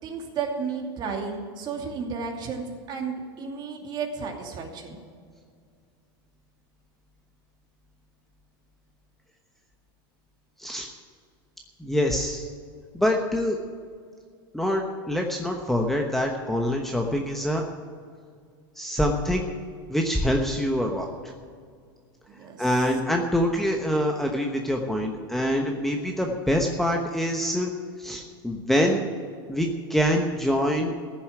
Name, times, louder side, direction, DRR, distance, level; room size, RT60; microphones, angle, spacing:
voice 1, 0.0-5.0 22.3-22.7, right 5 dB, 35° right, 2 dB, 2.6 m, -33 dB
voice 2, 10.6-10.9 11.8-12.5 12.9-13.6 14.5-17.6 18.8-19.5 19.9-21.1 22.6-27.7 28.0-29.1 29.5-30.9, equal, ahead, 1 dB, 1.1 m, -25 dB
14.5 x 7.2 x 9.3 m, 2.1 s
supercardioid pair, 130°, 12 cm